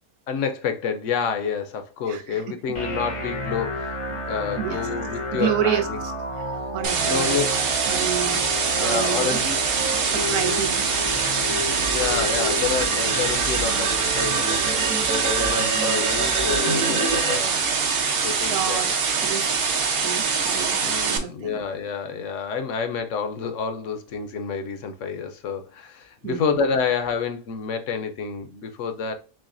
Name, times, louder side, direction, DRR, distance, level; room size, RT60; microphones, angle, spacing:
voice 1, 0.3-6.0 7.0-7.6 8.8-9.4 11.8-17.8 18.1-18.8 20.8-29.1, left 6 dB, 65° left, 0.9 m, -29 dB
voice 2, 2.1-2.8 4.6-4.8 5.3-5.9 6.3-7.6 7.9-8.4 8.7-9.5 10.0-10.8 18.3-21.5 26.2-26.5, right 10 dB, 90° right, 1.1 m, -30 dB
sound 1, 2.7-16.7, equal, 35° left, 0.5 m, -32 dB
sound 2, 6.8-21.2, right 5 dB, 55° right, 0.7 m, -24 dB
sound 3, 8.4-17.4, right 3 dB, 70° right, 1.4 m, -29 dB
6.0 x 2.1 x 2.5 m
omnidirectional pair, 1.5 m